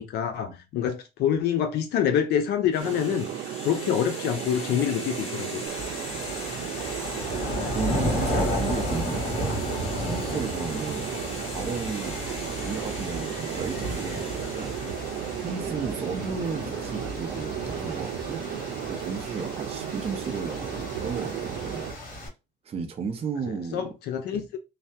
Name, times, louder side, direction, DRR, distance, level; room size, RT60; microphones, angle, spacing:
voice 1, 0.0-3.3 3.6-5.6 23.5-24.6, left 9 dB, 75° left, 0.5 m, -26 dB
sound 1, 2.7-15.8, left 2 dB, 35° left, 1.4 m, -40 dB
sound 2, 2.8-21.9, right 10 dB, 80° right, 0.6 m, -35 dB
sound 3, 5.7-22.3, equal, 55° left, 1.7 m, -33 dB
voice 2, 7.7-9.6 10.0-11.1 11.5-12.2 12.6-14.7 15.4-18.4 18.9-21.8 22.1-22.3 22.6-23.9 24.3-24.4, right 5 dB, 35° right, 0.6 m, -34 dB
3.2 x 2.1 x 2.7 m
cardioid pair, 110°, 17 cm